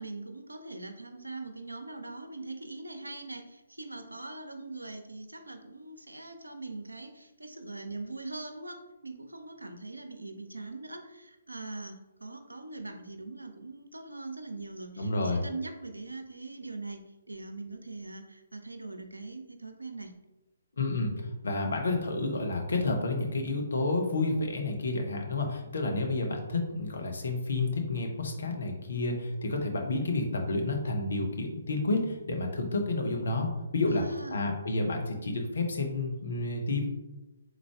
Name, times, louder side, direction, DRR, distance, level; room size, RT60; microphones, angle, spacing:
voice 1, 0.0-20.1 33.9-34.4, right 3 dB, 80° right, 6 dB, 0.6 m, -42 dB
voice 2, 15.0-15.4 20.8-34.0 34.3-36.9, left 2 dB, 60° left, 2 dB, 0.9 m, -30 dB
3.8 x 3.3 x 3.5 m, 1.0 s
figure-of-eight pair, 135°, 0 cm